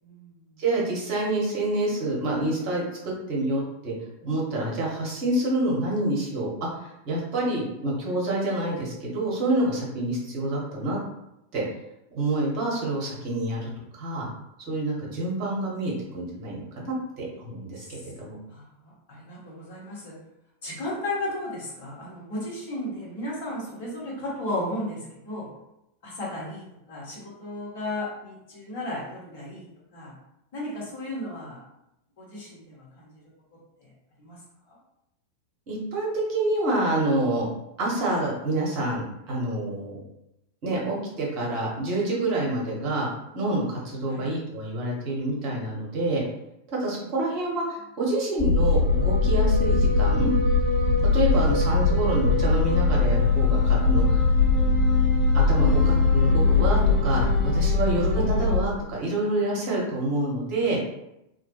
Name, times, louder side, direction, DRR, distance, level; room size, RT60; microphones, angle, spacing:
voice 1, 0.0-0.3 17.8-18.0 18.5-18.6 19.1-20.2 20.6-25.5 26.0-30.1 30.5-31.6 32.2-33.1 34.2-34.4 34.7-34.8 44.1-44.3 51.3-51.5 57.6-58.1, left 1 dB, 50° left, -5 dB, 1.1 m, -35 dB
voice 2, 0.6-3.9 4.2-11.0 11.5-11.6 12.1-14.3 14.7-18.4 35.7-37.5 37.8-40.0 40.6-43.1 43.3-46.2 46.7-50.3 51.1-54.2 55.3-60.8, right 2 dB, 45° right, -3 dB, 0.9 m, -27 dB
sound 1, 48.4-58.6, left 3 dB, 30° left, 0.8 m, -21 dB
2.3 x 2.1 x 2.8 m, 0.85 s
figure-of-eight pair, 90°, 0 cm